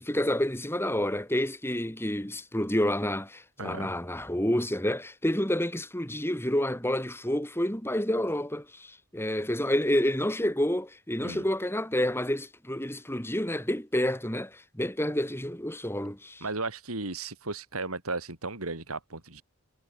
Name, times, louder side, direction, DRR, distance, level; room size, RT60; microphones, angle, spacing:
voice 1, 0.0-16.4, left 1 dB, 10° left, 4.6 m, -29 dB
voice 2, 3.6-3.9 11.2-11.4 16.4-19.4, right 3 dB, 75° right, 4.1 m, -35 dB
head